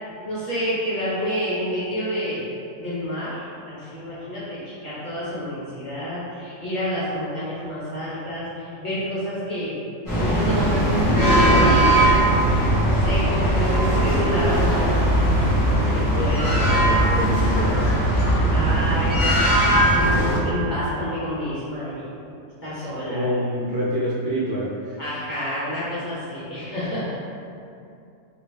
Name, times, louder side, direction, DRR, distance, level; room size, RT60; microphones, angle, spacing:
voice 1, 0.2-2.5 2.8-9.8 10.1-12.2 12.8-15.2 15.7-16.8 18.2-19.5 19.9-22.2 22.6-23.3 25.0-27.1, equal, 40° left, -11 dB, 0.9 m, -29 dB
sound 1, 10.1-20.4, right 1 dB, 15° left, 1.0 m, -19 dB
voice 2, 16.1-17.9 23.0-25.0, equal, 60° right, -8 dB, 0.8 m, -27 dB
3.1 x 2.5 x 3.2 m, 2.6 s
omnidirectional pair, 1.3 m